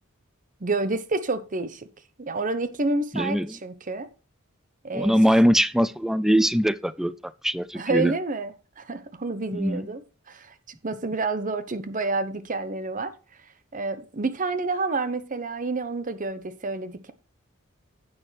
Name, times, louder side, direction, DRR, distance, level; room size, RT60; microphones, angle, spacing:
voice 1, 0.6-1.9 2.2-4.1 4.8-5.2 7.7-10.0 10.3-10.5 10.8-13.1 13.7-17.1, right 3 dB, 40° right, 0.9 m, -29 dB
voice 2, 3.1-3.5 4.9-7.1 7.4-8.1 9.5-9.9, equal, ahead, 0.4 m, -22 dB
10.5 x 8.9 x 3.3 m
head